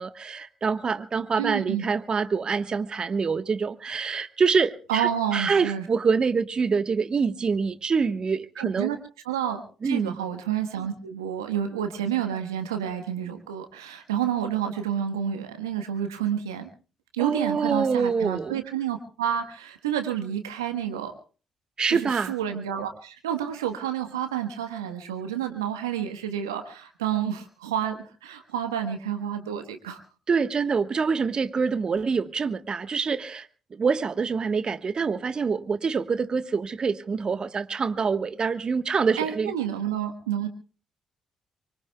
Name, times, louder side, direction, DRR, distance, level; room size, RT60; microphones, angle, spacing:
voice 1, 0.0-8.9 9.8-10.2 17.2-18.6 21.8-22.4 30.3-39.5, right 5 dB, 45° right, 1.3 m, -26 dB
voice 2, 1.4-1.8 4.9-5.9 8.6-9.0 9.2-16.7 17.1-21.1 21.9-30.0 39.2-40.5, right 9 dB, 90° right, 1.3 m, -29 dB
24.5 x 24.5 x 2.3 m
hypercardioid pair, 45°, 2 cm